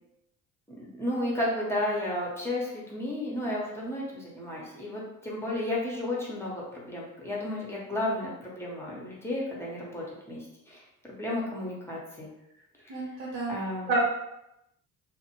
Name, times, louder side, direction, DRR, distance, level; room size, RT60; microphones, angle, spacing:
voice 1, 0.8-10.8 11.2-12.3 13.5-13.9, left 1 dB, 5° left, -5 dB, 1.0 m, -33 dB
voice 2, 12.9-13.5 13.9-14.0, right 3 dB, 60° right, -4 dB, 0.9 m, -29 dB
2.4 x 2.1 x 3.0 m, 0.86 s
hypercardioid pair, 50°, 45 cm